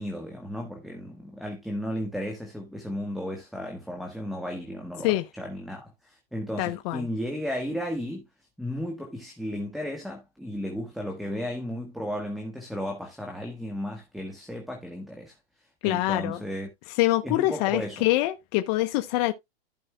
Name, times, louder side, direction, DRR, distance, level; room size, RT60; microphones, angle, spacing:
voice 1, 0.0-8.3 8.6-15.3 15.8-16.7 17.2-18.1, equal, ahead, 1.6 m, -34 dB
voice 2, 6.6-7.1 15.8-16.4 17.0-19.3, left 17 dB, 45° left, 0.9 m, -25 dB
15.0 x 5.5 x 2.3 m
hypercardioid pair, 135°, 29 cm